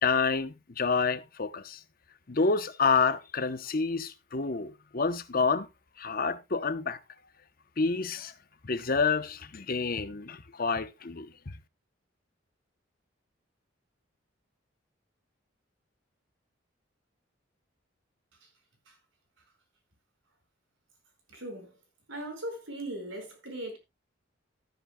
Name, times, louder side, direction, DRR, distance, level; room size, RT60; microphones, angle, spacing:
voice 1, 0.0-1.8 2.3-5.7 6.0-7.0 7.8-8.3 8.6-11.3, left 4 dB, 45° left, 0.8 m, -28 dB
voice 2, 21.3-21.7 22.1-23.8, right 1 dB, 80° right, 5.0 m, -39 dB
14.0 x 10.5 x 2.2 m
head